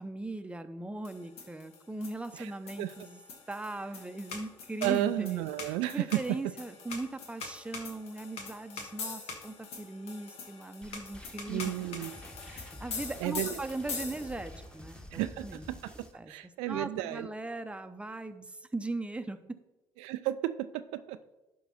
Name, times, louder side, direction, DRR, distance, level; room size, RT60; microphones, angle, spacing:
voice 1, 0.0-3.2 3.5-12.1 12.4-15.7 16.1-16.3 16.7-19.4, right 2 dB, 10° right, 9 dB, 0.8 m, -39 dB
sound 1, 1.0-14.6, left 5 dB, 70° left, 1.5 m, -43 dB
voice 2, 4.8-6.2 11.5-12.1 13.2-13.6 15.1-15.9 16.3-17.3 20.0-20.4 20.7-21.2, right 15 dB, 80° right, 12 dB, 0.4 m, -33 dB
sound 2, 10.8-16.1, left 1 dB, 10° left, 1.5 m, -49 dB
11.0 x 4.7 x 4.2 m, 1.0 s
hypercardioid pair, 55°, 11 cm